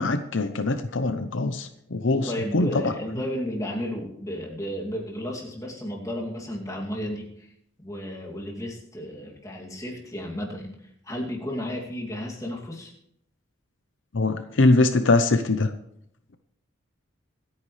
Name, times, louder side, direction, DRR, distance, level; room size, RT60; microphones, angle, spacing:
voice 1, 0.0-2.9 14.1-15.7, left 2 dB, 70° left, 9 dB, 0.8 m, -22 dB
voice 2, 2.3-7.5 7.8-10.7 11.0-12.9, equal, 15° left, -2 dB, 2.6 m, -33 dB
25.5 x 9.4 x 3.3 m, 0.74 s
head